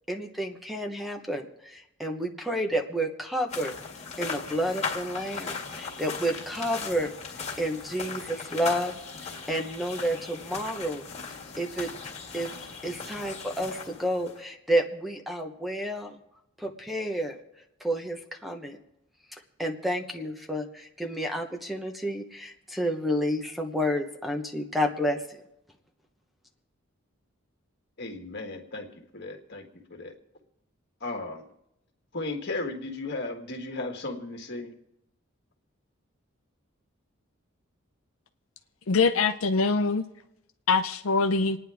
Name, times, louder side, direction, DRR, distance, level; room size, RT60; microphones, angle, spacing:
voice 1, 0.1-3.7 4.2-7.1 7.6-8.9 9.2-11.9 12.3-12.5 12.8-16.2 16.6-17.4 17.8-18.8 19.3-25.4, equal, ahead, 3 dB, 1.0 m, -30 dB
sound 1, 3.5-14.4, left 5 dB, 35° left, 1.9 m, -38 dB
voice 2, 28.0-30.2 31.0-31.4 32.1-34.7, left 2 dB, 55° left, 3 dB, 1.8 m, -35 dB
voice 3, 38.9-40.0 40.7-41.6, left 4 dB, 80° left, 7 dB, 0.6 m, -23 dB
28.0 x 9.7 x 3.5 m, 0.84 s
head